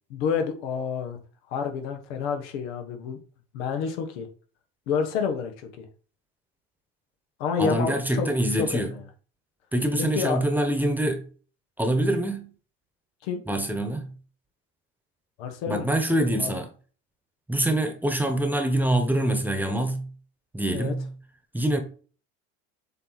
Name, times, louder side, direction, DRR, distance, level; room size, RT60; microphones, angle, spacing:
voice 1, 0.1-1.2 1.5-3.2 3.5-4.3 4.9-5.9 7.4-8.3 8.6-9.0 10.0-10.4 13.2-13.4 15.4-15.9 16.4-16.5 20.7-20.9, left 6 dB, 80° left, 1.5 m, -29 dB
voice 2, 7.6-8.9 9.7-11.2 11.8-12.5 13.5-14.1 15.7-16.7 17.5-20.1 20.5-21.1 21.5-21.8, right 1 dB, 5° right, 1.2 m, -25 dB
7.6 x 3.1 x 4.1 m
supercardioid pair, 100°, 33 cm